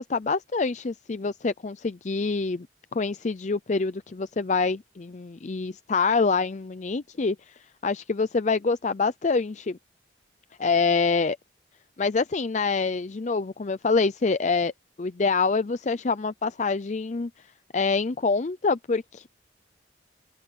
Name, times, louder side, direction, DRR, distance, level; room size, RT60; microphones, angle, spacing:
voice 1, 0.0-2.7 2.9-7.5 7.8-9.8 10.6-11.4 12.0-14.7 15.0-17.3 17.7-19.3, left 4 dB, 40° left, 0.5 m, -26 dB
open air
head